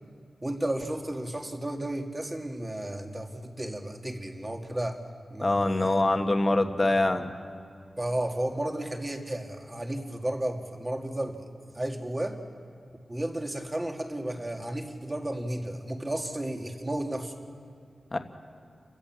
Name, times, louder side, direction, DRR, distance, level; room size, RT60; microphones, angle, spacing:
voice 1, 0.4-5.0 5.3-6.0 8.0-11.5 11.7-12.4 13.1-17.3, right 1 dB, 20° right, 3 dB, 2.1 m, -33 dB
voice 2, 5.4-7.3 18.1-18.2, left 2 dB, 30° left, 6 dB, 1.4 m, -24 dB
30.0 x 15.5 x 7.5 m, 2.5 s
wide cardioid pair, 110°, 0 cm